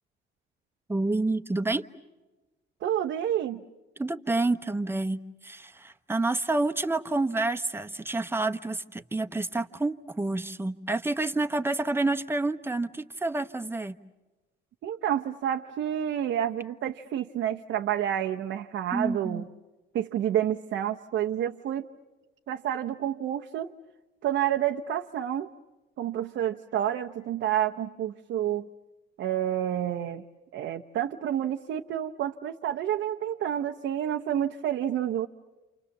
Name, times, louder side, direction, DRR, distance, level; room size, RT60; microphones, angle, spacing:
voice 1, 0.9-1.9 4.0-14.0 18.9-19.5, right 2 dB, 10° right, 7 dB, 1.1 m, -29 dB
voice 2, 2.8-3.6 14.8-19.5 19.9-21.9 22.5-23.7 24.2-25.5 26.0-28.7 29.2-30.2 30.5-35.3, right 10 dB, 75° right, 4 dB, 0.9 m, -29 dB
29.0 x 28.0 x 7.2 m, 1.1 s
cardioid pair, 90°, 20 cm